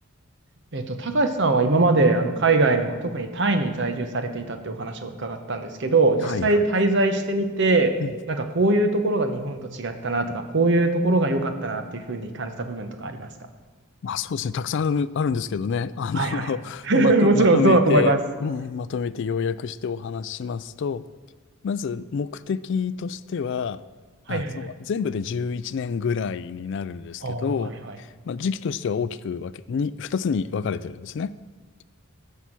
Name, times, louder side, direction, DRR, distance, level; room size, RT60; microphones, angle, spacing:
voice 1, 0.7-7.9 8.3-13.3 16.2-16.4 16.9-18.2 24.3-24.7 27.2-27.5, right 2 dB, 55° right, 7 dB, 1.0 m, -22 dB
voice 2, 6.2-6.6 8.0-8.1 14.0-21.0 21.6-23.8 24.3-31.3, left 6 dB, 55° left, 16 dB, 0.3 m, -28 dB
14.5 x 5.7 x 6.0 m, 1.3 s
head